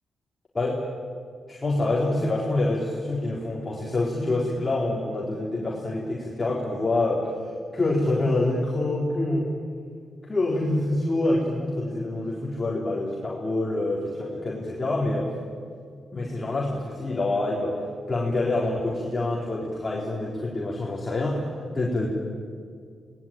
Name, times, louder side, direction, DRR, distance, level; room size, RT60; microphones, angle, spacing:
voice 1, 1.5-9.5 10.2-15.3 16.1-22.1, left 2 dB, 25° left, -3 dB, 4.0 m, -26 dB
26.5 x 19.5 x 9.1 m, 2.3 s
cardioid pair, 110°, 0 cm